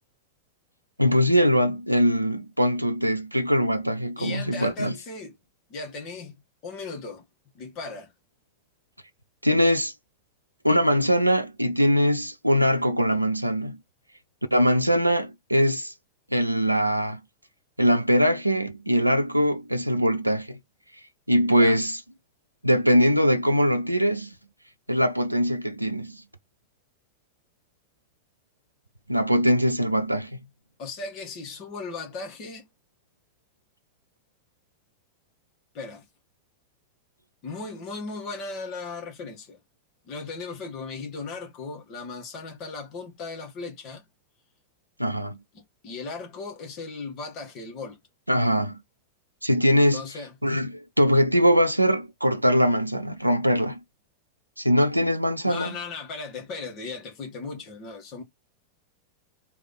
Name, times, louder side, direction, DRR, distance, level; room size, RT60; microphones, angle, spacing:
voice 1, 1.0-4.9 9.4-9.9 10.6-13.8 14.5-15.9 16.3-17.2 17.8-20.6 21.3-22.0 22.6-24.3 24.9-26.2 29.1-30.4 45.0-45.4 48.3-48.8 49.4-50.0 50.4-53.8 54.6-55.7, equal, 90° right, 0.5 m, -22 dB
voice 2, 4.2-5.4 5.7-7.2 7.5-8.1 21.5-21.8 30.8-32.7 35.7-36.0 37.4-39.6 40.0-44.0 45.5-48.0 49.9-50.3 55.4-58.2, left 4 dB, 40° left, 1.5 m, -37 dB
3.4 x 2.8 x 4.0 m
figure-of-eight pair, 90°, 0 cm